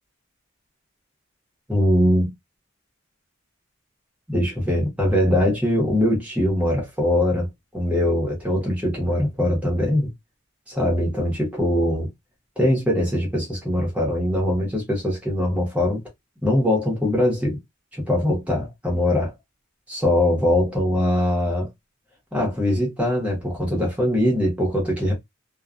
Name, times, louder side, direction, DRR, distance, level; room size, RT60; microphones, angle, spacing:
voice 1, 1.7-2.3 4.3-10.1 10.7-12.1 12.6-16.0 16.4-17.6 17.9-19.3 19.9-21.7 22.3-25.1, left 1 dB, 5° right, 0.9 m, -22 dB
2.3 x 2.2 x 2.4 m
head